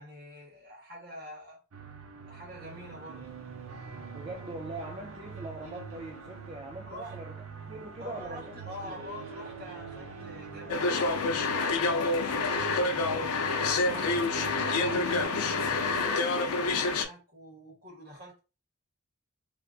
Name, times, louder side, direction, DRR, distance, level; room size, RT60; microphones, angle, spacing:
voice 1, 0.0-1.6 2.2-3.3 6.9-7.2 8.0-14.1 14.7-18.4, equal, 45° right, 1.6 m, -45 dB
sound 1, 1.7-15.3, right 5 dB, 90° right, 0.7 m, -46 dB
sound 2, 2.6-16.1, right 3 dB, 65° right, 1.0 m, -46 dB
voice 2, 4.1-8.6 8.8-9.0, right 1 dB, 25° right, 0.4 m, -42 dB
sound 3, 10.7-17.0, left 3 dB, 90° left, 0.5 m, -27 dB
3.4 x 2.4 x 2.3 m
head